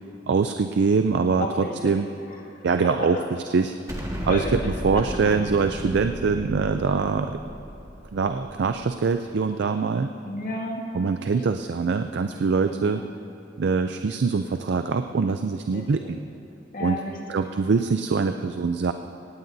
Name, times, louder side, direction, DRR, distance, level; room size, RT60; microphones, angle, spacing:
voice 1, 0.3-2.1 2.6-3.2 3.5-3.7 4.3-7.4 8.1-10.1 10.9-13.0 13.6-16.2 16.8-17.0 17.3-18.9, right 5 dB, 65° right, 8 dB, 0.4 m, -23 dB
voice 2, 1.4-1.9 2.3-3.2 4.3-5.0 5.4-5.5 10.2-10.8 12.7-13.1 15.7-16.1 16.7-17.4, left 1 dB, 50° left, -2 dB, 2.0 m, -33 dB
Explosion, 3.9-9.1, equal, 20° right, 1.6 m, -34 dB
18.0 x 16.5 x 2.7 m, 2.9 s
head